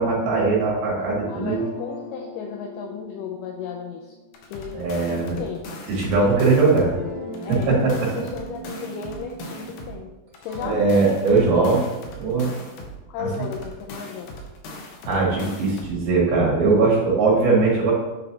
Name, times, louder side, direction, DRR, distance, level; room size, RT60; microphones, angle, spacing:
voice 1, 0.0-1.6 4.7-5.4 5.9-6.9 7.5-8.1 10.6-11.9 12.2-12.5 15.1-17.9, right 3 dB, 80° right, -4 dB, 3.7 m, -20 dB
voice 2, 1.3-4.1 4.5-4.8 5.1-5.6 7.4-10.1 10.4-10.9 13.1-14.3, left 6 dB, 85° left, 2 dB, 1.9 m, -34 dB
sound 1, 1.5-4.7 5.6-10.0 10.3-14.5, equal, 55° right, 3.0 m, -40 dB
sound 2, 4.3-7.0 7.3-10.0 10.3-13.0 13.3-16.0, left 1 dB, 70° left, 2.2 m, -39 dB
9.0 x 5.4 x 2.8 m, 1.1 s
omnidirectional pair, 4.3 m